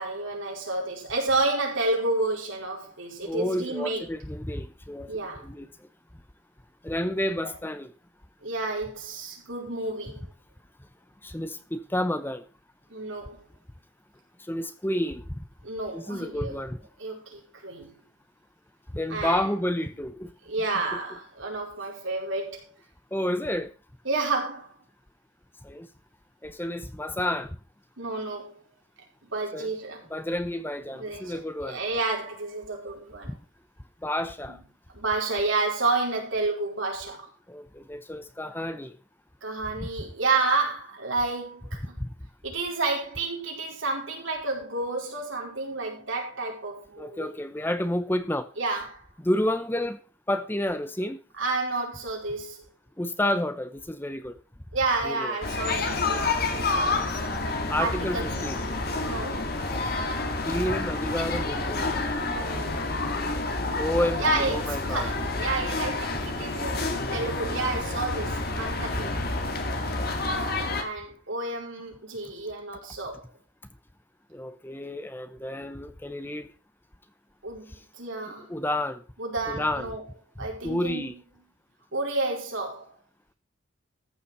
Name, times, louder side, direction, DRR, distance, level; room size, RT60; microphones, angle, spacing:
voice 1, 0.0-4.1 5.1-5.5 7.4-7.5 8.4-10.3 12.9-13.5 15.6-16.5 17.0-18.0 19.1-19.5 20.4-22.7 24.0-24.8 28.0-28.6 29.2-30.1 30.9-33.3 34.5-34.6 34.9-37.3 39.4-42.0 42.4-47.3 48.6-49.0 51.4-52.6 54.7-57.2 57.8-58.5 59.0-59.5 62.2-62.9 64.2-69.2 70.7-73.3 77.4-78.6 79.2-80.0 80.4-81.2 81.9-82.9, right 3 dB, 70° right, 4.8 m, -30 dB
voice 2, 3.2-5.1 5.4-5.7 6.8-7.9 11.2-12.4 14.5-15.3 15.9-16.8 18.9-20.3 23.1-23.7 25.6-25.9 26.4-27.6 29.5-29.7 30.1-31.8 33.3-33.4 34.0-34.6 37.5-39.0 39.8-39.9 42.0-42.1 47.0-48.5 49.2-50.0 50.3-51.2 53.0-54.3 55.0-55.4 57.7-58.6 60.5-62.0 63.8-65.1 69.8-70.0 74.3-76.5 78.5-79.0 79.5-80.0 80.6-81.1, left 1 dB, 10° left, 0.7 m, -30 dB
sound 1, 55.4-70.8, left 2 dB, 50° left, 2.1 m, -29 dB
14.0 x 7.0 x 5.5 m
head